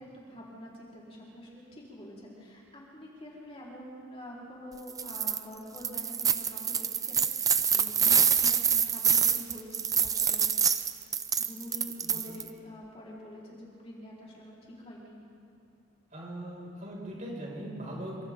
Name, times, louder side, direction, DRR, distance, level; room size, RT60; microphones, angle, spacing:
voice 1, 0.0-10.4 10.8-10.9 11.3-15.2, equal, 30° left, -6 dB, 4.9 m, -46 dB
sound 1, 4.9-5.4 5.8-12.5, right 7 dB, 15° right, 0.6 m, -26 dB
voice 2, 16.1-18.3, right 1 dB, 40° right, -3 dB, 6.6 m, -40 dB
29.0 x 26.5 x 4.0 m, 2.6 s
head